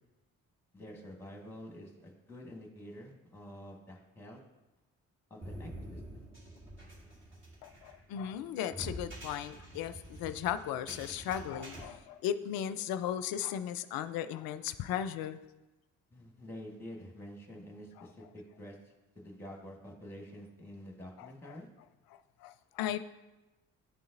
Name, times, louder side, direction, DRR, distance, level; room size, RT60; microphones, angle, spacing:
voice 1, 0.7-4.4 5.3-6.3 16.1-21.7, equal, 5° left, 0 dB, 1.4 m, -48 dB
sound 1, 5.4-11.8, right 1 dB, 30° right, 1.8 m, -47 dB
voice 2, 7.6-15.4 18.0-18.1 21.2-21.6 22.4-23.0, left 10 dB, 65° left, 12 dB, 0.5 m, -36 dB
10.0 x 3.8 x 2.6 m, 1.1 s
hypercardioid pair, 45°, 39 cm